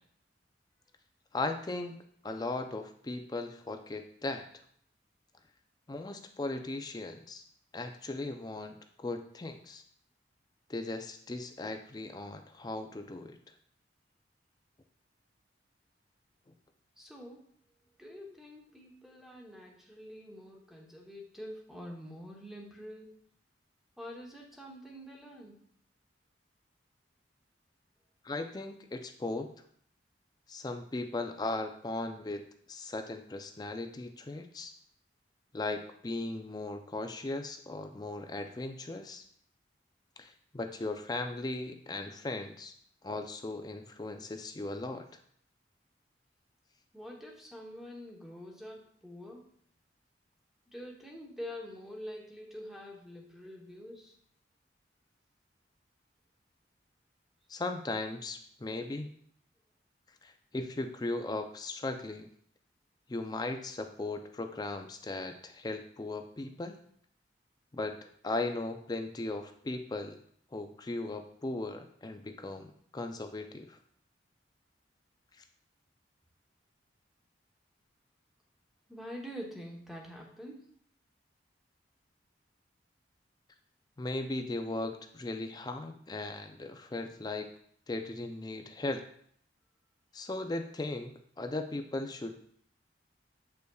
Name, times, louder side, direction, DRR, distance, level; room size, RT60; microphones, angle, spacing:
voice 1, 1.3-2.0 2.2-4.5 5.9-7.4 7.7-8.8 9.0-9.8 10.7-13.4 28.2-29.5 30.5-34.7 35.5-39.2 40.2-42.7 43.0-45.1 57.5-59.1 60.2-62.3 63.1-66.8 67.7-68.0 68.2-70.2 70.5-73.8 84.0-87.5 87.9-89.0 90.1-92.4, left 2 dB, 20° left, 6 dB, 0.4 m, -37 dB
voice 2, 17.0-17.4 18.0-23.2 24.0-25.6 46.9-49.4 50.7-54.1 78.9-80.6, equal, ahead, -1 dB, 0.9 m, -46 dB
8.0 x 5.3 x 2.3 m, 0.63 s
head